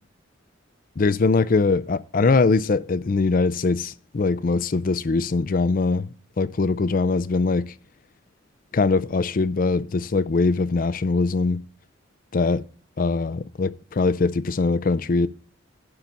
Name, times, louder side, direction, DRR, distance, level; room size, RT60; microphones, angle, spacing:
voice 1, 1.0-7.7 8.7-11.6 12.3-12.6 13.0-15.3, left 3 dB, 45° left, 0.4 m, -22 dB
11.5 x 4.0 x 7.0 m
head